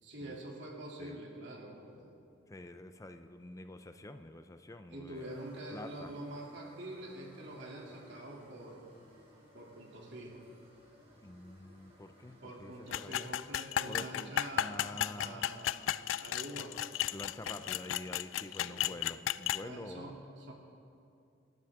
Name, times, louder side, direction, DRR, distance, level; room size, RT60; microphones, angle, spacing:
voice 1, 0.0-2.1 4.9-8.9 9.5-10.4 12.4-15.9 16.2-16.7 18.4-18.9 19.6-20.5, right 1 dB, 65° right, -2 dB, 2.9 m, -46 dB
voice 2, 2.5-5.4 5.7-6.1 11.2-13.3 13.8-15.5 17.1-20.1, left 1 dB, 15° left, 9 dB, 0.5 m, -47 dB
sound 1, 5.1-18.2, equal, 35° right, 3.2 m, -60 dB
sound 2, 12.9-19.6, left 11 dB, 90° left, 0.3 m, -34 dB
26.5 x 12.0 x 3.6 m, 2.5 s
head